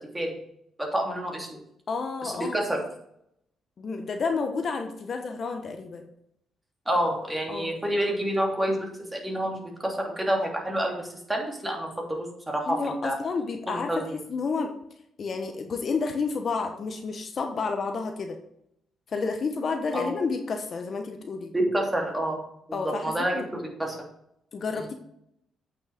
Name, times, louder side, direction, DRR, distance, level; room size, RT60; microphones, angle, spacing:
voice 1, 0.9-1.6 2.2-2.8 6.9-12.8 13.0-13.2 13.7-14.0 19.9-20.1 21.5-22.4 22.7-23.4 23.8-24.0, right 1 dB, 10° right, 0 dB, 3.0 m, -28 dB
voice 2, 1.9-2.6 3.8-6.1 7.5-7.7 12.7-14.7 15.2-18.4 19.1-21.5 22.7-23.5 24.5-24.9, left 4 dB, 50° left, 5 dB, 1.1 m, -30 dB
8.4 x 6.3 x 5.0 m, 0.74 s
cardioid pair, 90°, 0 cm